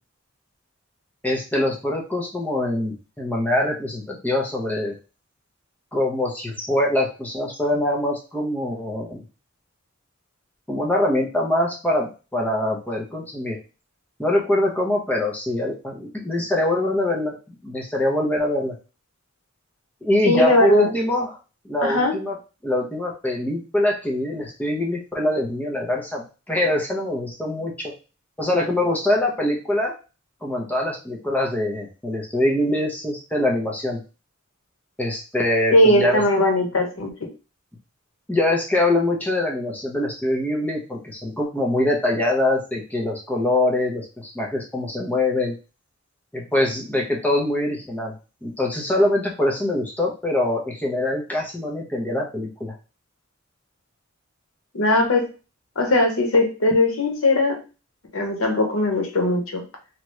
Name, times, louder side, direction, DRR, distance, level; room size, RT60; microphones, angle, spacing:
voice 1, 1.2-4.9 5.9-9.2 10.7-13.6 14.2-17.4 17.6-18.7 20.0-21.4 21.6-22.4 22.6-27.9 28.4-29.9 30.4-34.0 35.0-36.2 38.3-45.5 46.3-48.1 48.4-52.7, left 1 dB, 10° left, -1 dB, 0.8 m, -23 dB
voice 2, 20.2-20.9 21.8-22.1 35.7-37.1 54.7-55.3 55.8-57.6 58.1-59.6, left 1 dB, 90° left, 3 dB, 0.9 m, -19 dB
2.9 x 2.5 x 3.1 m, 0.32 s
head